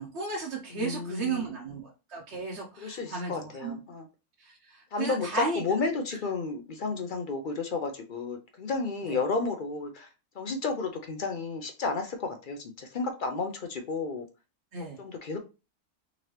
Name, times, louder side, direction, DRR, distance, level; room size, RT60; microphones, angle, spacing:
voice 1, 0.0-3.8 4.4-5.6 9.1-9.2 14.7-15.0, right 3 dB, 55° right, -3 dB, 1.0 m, -34 dB
voice 2, 0.7-1.5 2.8-4.1 4.9-10.1 10.3-14.3 15.0-15.4, left 4 dB, 70° left, 5 dB, 0.4 m, -32 dB
3.8 x 2.8 x 3.2 m, 0.30 s
omnidirectional pair, 1.6 m